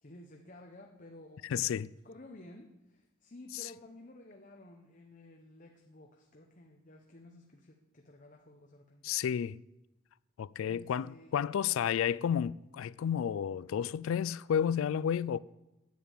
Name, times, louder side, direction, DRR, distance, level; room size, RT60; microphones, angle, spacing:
voice 1, 0.0-1.7 2.0-9.2 10.6-11.4 11.7-12.0, left 1 dB, 40° left, 0.9 m, -54 dB
voice 2, 1.4-1.9 9.0-9.6 10.4-15.4, left 8 dB, 75° left, 0.3 m, -31 dB
10.5 x 7.4 x 8.8 m
head